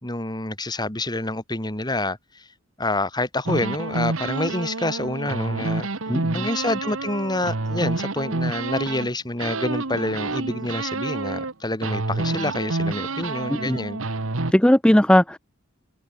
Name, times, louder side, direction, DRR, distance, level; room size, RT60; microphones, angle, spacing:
voice 1, 0.0-2.2 2.8-5.9 6.3-14.0, left 2 dB, 20° left, 3.0 m, -27 dB
sound 1, 3.5-9.1 9.4-11.5 11.8-14.5, right 3 dB, 85° right, 1.5 m, -28 dB
voice 2, 6.1-6.5 13.5-13.8 14.5-15.4, left 1 dB, 5° left, 0.5 m, -18 dB
head